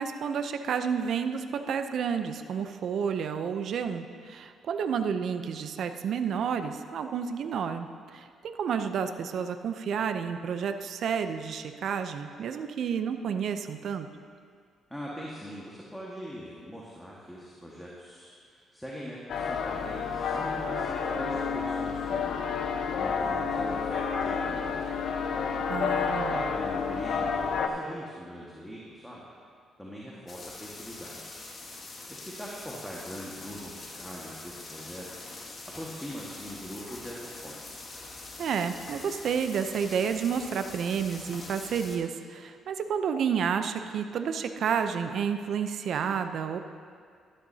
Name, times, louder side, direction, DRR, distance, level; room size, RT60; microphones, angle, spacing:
voice 1, 0.0-14.1 25.7-26.4 38.4-46.6, right 7 dB, 65° right, 8 dB, 0.6 m, -30 dB
voice 2, 14.9-22.4 22.9-25.0 26.1-29.2 29.8-31.2 32.1-35.3 35.6-37.8, equal, ahead, -5 dB, 1.6 m, -42 dB
sound 1, 19.3-27.7, left 5 dB, 70° left, 0.8 m, -30 dB
sound 2, 30.3-42.0, left 3 dB, 40° left, 2.1 m, -44 dB
13.0 x 12.0 x 2.8 m, 2.1 s
cardioid pair, 90°, 0 cm